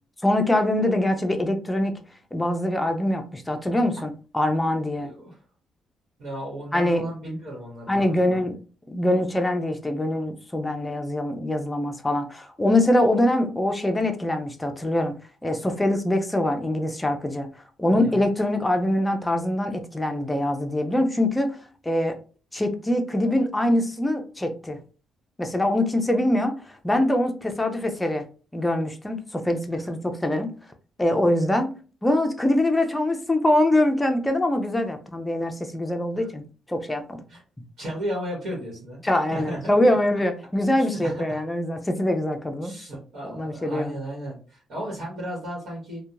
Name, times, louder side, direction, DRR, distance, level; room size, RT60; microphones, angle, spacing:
voice 1, 0.2-2.0 2.3-5.1 6.7-7.1 7.9-8.6 8.9-15.1 15.4-17.5 17.8-21.6 21.8-22.2 22.5-24.8 25.4-28.2 28.5-30.5 31.0-31.7 32.0-36.4 36.7-37.2 39.0-42.7 43.2-44.0, left 1 dB, 10° left, 5 dB, 0.5 m, -23 dB
voice 2, 5.0-5.4 6.2-8.4 17.9-18.2 36.1-36.3 37.3-37.4 37.8-39.0 39.3-39.7 40.8-41.4 42.6-46.0, right 1 dB, 70° right, -5 dB, 1.2 m, -34 dB
2.8 x 2.2 x 2.4 m, 0.37 s
cardioid pair, 90°, 0 cm